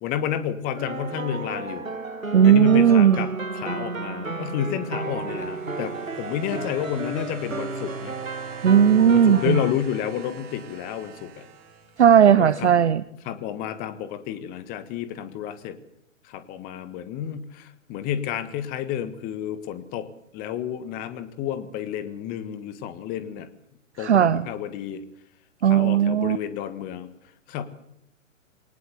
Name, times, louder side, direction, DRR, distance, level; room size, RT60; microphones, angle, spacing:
voice 1, 0.0-1.8 2.4-8.1 9.1-11.4 12.3-12.7 13.2-15.8 16.3-20.1 20.3-23.5 24.0-25.0 25.6-27.1 27.5-27.6, left 10 dB, 20° left, 12 dB, 1.6 m, -30 dB
sound 1, 0.8-9.7, right 3 dB, 85° right, 1.8 m, -32 dB
voice 2, 2.3-3.3 8.6-9.6 12.0-13.0 24.0-24.5 25.6-26.4, right 8 dB, 60° right, 16 dB, 0.9 m, -16 dB
sound 2, 4.7-12.5 13.5-13.6, right 6 dB, 25° right, 3.4 m, -46 dB
22.5 x 19.0 x 8.1 m, 0.74 s
figure-of-eight pair, 125°, 39 cm